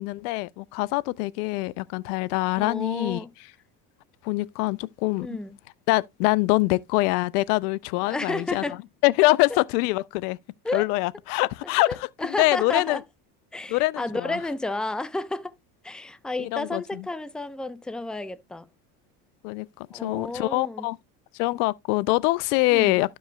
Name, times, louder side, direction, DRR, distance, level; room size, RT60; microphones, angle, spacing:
voice 1, 0.0-3.2 4.2-5.3 5.9-8.6 9.0-10.4 10.7-11.9 12.4-13.0 13.7-14.4 16.4-17.0 19.4-21.0 21.4-23.2, left 21 dB, 80° left, 0.5 m, -24 dB
voice 2, 2.6-3.3 5.2-5.5 8.0-8.8 10.6-10.9 11.9-13.0 13.5-15.5 15.8-18.7 19.9-20.9 22.7-23.0, left 2 dB, ahead, 0.6 m, -31 dB
13.0 x 5.2 x 2.2 m
supercardioid pair, 85°, 45 cm